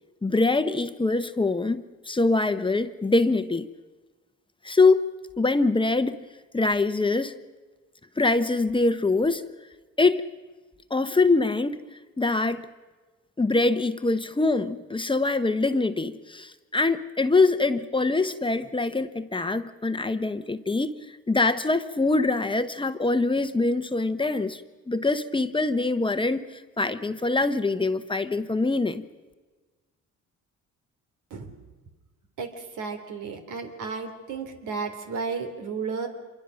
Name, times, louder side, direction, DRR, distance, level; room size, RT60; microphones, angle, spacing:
voice 1, 0.2-3.7 4.6-5.0 5.4-6.2 6.5-7.3 8.2-9.4 10.0-10.2 10.9-11.8 12.2-12.7 13.4-20.9 21.3-24.6 24.9-26.4 26.8-29.1, left 3 dB, 15° left, 1.0 m, -24 dB
voice 2, 32.4-36.1, right 5 dB, 85° right, 3.1 m, -33 dB
26.0 x 22.5 x 6.4 m
cardioid pair, 90°, 30 cm